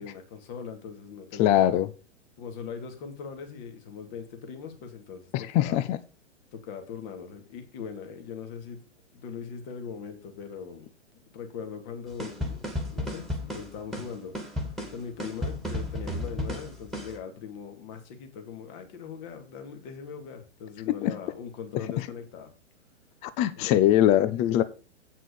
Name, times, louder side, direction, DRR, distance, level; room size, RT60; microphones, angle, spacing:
voice 1, 0.0-1.7 2.4-5.8 6.5-8.8 9.1-10.9 11.3-14.6 14.9-22.5 23.6-23.7 24.4-24.6, left 6 dB, 40° left, 2.6 m, -40 dB
voice 2, 1.4-1.9 5.3-6.0 21.0-21.1 23.2-24.6, left 12 dB, 20° left, 0.5 m, -22 dB
sound 1, 12.2-17.2, left 1 dB, ahead, 2.2 m, -33 dB
8.5 x 5.9 x 6.9 m
figure-of-eight pair, 115°, 36 cm